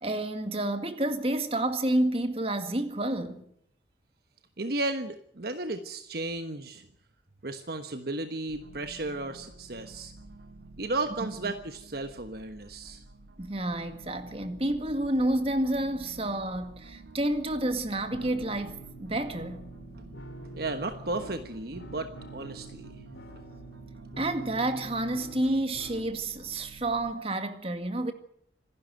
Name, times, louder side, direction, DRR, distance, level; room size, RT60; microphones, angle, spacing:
voice 1, 0.0-3.4 13.4-19.7 24.2-28.1, right 1 dB, 30° right, 2.0 m, -29 dB
voice 2, 4.6-6.8 7.4-10.1 10.8-13.0 20.5-22.9, right 2 dB, 55° right, 1.3 m, -34 dB
sound 1, 8.5-27.1, right 2 dB, 85° right, 2.1 m, -50 dB
sound 2, 18.1-26.1, right 1 dB, 75° left, 2.8 m, -46 dB
26.0 x 12.0 x 9.1 m
head